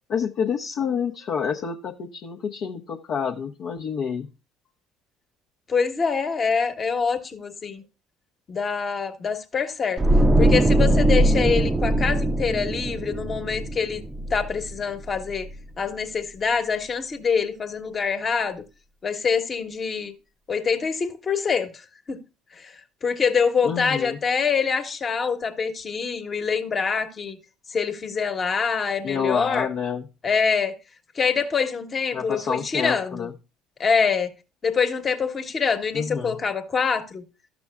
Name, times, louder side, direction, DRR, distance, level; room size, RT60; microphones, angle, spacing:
voice 1, 0.1-4.3 23.6-24.2 29.0-30.0 32.1-33.3 35.9-36.4, left 6 dB, 60° left, 0.7 m, -28 dB
voice 2, 5.7-7.8 8.5-10.0 10.4-14.0 14.3-15.5 15.8-18.6 19.0-20.1 20.5-22.2 22.5-22.7 23.0-27.4 27.7-29.7 30.2-30.7 31.1-33.3 33.8-34.3 34.6-37.2, left 5 dB, 40° left, 1.2 m, -25 dB
sound 1, 10.0-15.1 15.3-15.6, right 1 dB, 20° right, 0.5 m, -21 dB
13.0 x 6.0 x 2.2 m
hypercardioid pair, 70°, 0 cm